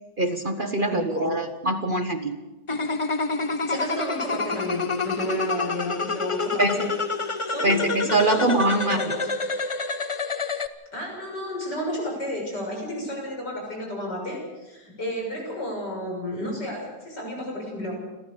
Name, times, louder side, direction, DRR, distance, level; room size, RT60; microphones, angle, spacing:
voice 1, 0.2-2.4 6.6-6.8 7.6-9.0, right 2 dB, 35° right, 7 dB, 1.1 m, -23 dB
voice 2, 0.8-1.3 3.6-6.9 7.5-9.3 10.9-17.9, equal, 85° left, 0 dB, 7.5 m, -32 dB
sound 1, 2.7-10.7, left 4 dB, 30° left, 0.6 m, -28 dB
29.5 x 13.0 x 6.9 m, 1.1 s
omnidirectional pair, 1.8 m